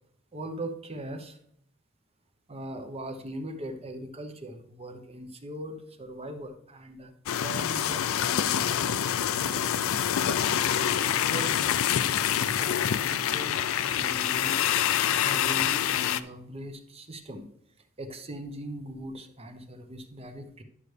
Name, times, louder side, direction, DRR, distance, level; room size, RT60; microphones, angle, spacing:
voice 1, 0.3-1.4 2.5-7.2 7.4-17.5 18.0-20.6, right 1 dB, 30° right, 7 dB, 0.9 m, -41 dB
sound 1, 7.3-16.2, left 10 dB, 75° left, 0.4 m, -26 dB
11.0 x 6.5 x 3.3 m, 0.69 s
head